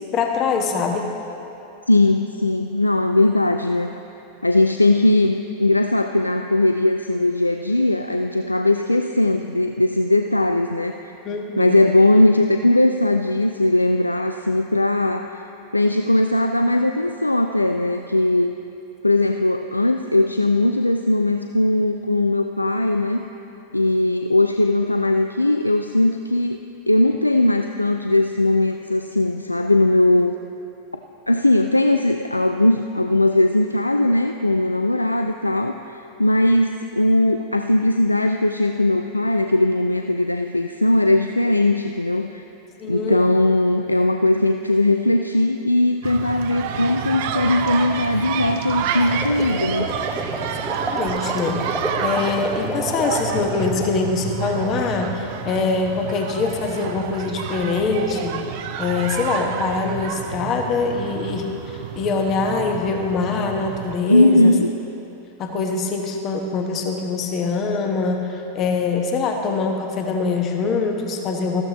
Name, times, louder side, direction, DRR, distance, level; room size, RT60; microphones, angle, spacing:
voice 1, 0.1-1.1 11.2-11.9 42.8-43.3 50.8-51.6 52.0-58.4 58.8-64.5 65.4-71.6, left 4 dB, 35° left, 3 dB, 1.2 m, -24 dB
voice 2, 1.9-3.9 4.4-11.1 11.6-15.5 15.7-18.5 19.0-23.3 23.7-26.6 26.9-30.3 31.3-42.4 42.9-49.9 64.1-64.7, left 1 dB, 85° left, 6 dB, 0.3 m, -19 dB
sound 1, 46.0-64.0, right 7 dB, 50° right, 0.7 m, -29 dB
sound 2, 49.1-53.9, right 1 dB, 5° right, 1.2 m, -30 dB
14.0 x 13.5 x 3.0 m, 3.0 s
figure-of-eight pair, 90°, 0 cm